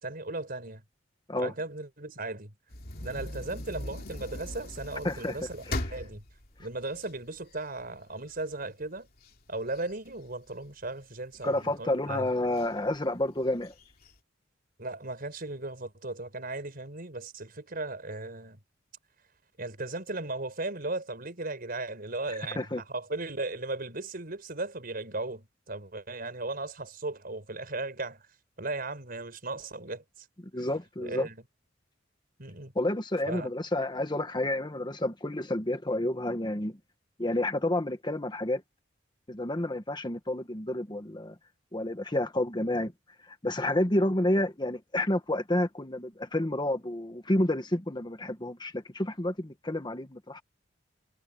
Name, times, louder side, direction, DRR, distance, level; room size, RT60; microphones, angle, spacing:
voice 1, 0.0-0.8 1.4-2.5 3.0-6.2 6.6-9.1 9.5-12.3 14.8-18.6 19.6-28.2 28.6-30.0 30.6-30.7 31.0-31.4 32.4-32.7 33.3-33.5, right 2 dB, 50° right, 5.2 m, -36 dB
sound 1, 2.7-7.9 8.4-8.5 8.8-10.9 11.4-11.9 12.5-12.7 13.0-13.1 13.5-14.1, left 1 dB, 50° left, 3.0 m, -39 dB
voice 2, 5.0-6.0 11.4-13.7 22.5-22.8 30.5-31.3 32.7-36.8 37.2-38.6 39.3-41.3 41.7-42.9 43.2-50.4, left 1 dB, 25° left, 1.4 m, -30 dB
head